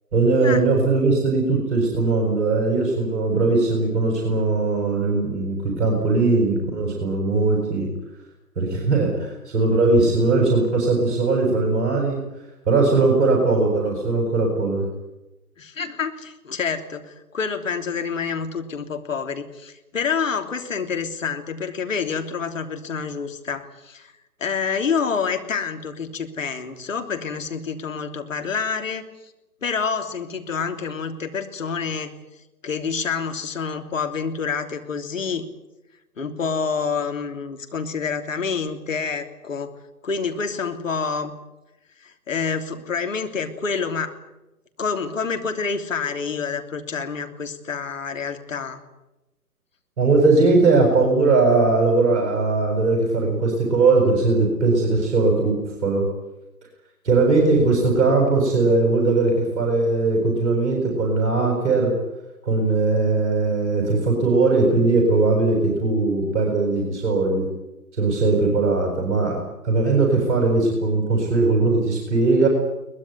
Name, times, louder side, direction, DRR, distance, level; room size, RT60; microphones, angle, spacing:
voice 1, 0.1-7.9 8.6-12.2 12.7-14.9 50.0-56.1 57.0-61.9 62.4-67.5 68.0-69.4 69.6-72.5, right 3 dB, 45° right, 0 dB, 7.4 m, -19 dB
voice 2, 15.6-24.1 24.4-29.0 29.6-32.1 32.6-35.5 36.2-39.7 40.0-41.3 42.0-44.2 44.8-48.8, left 5 dB, 55° left, 6 dB, 3.3 m, -27 dB
23.0 x 20.5 x 9.6 m, 0.98 s
figure-of-eight pair, 145°, 48 cm